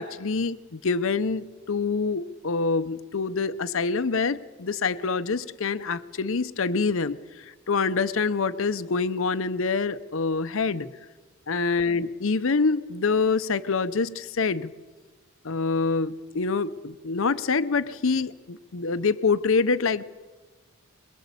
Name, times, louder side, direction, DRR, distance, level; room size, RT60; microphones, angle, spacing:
voice 1, 0.0-10.9 11.5-14.7 15.4-20.0, left 4 dB, 70° left, 12 dB, 0.7 m, -26 dB
22.5 x 22.0 x 8.3 m, 1.3 s
head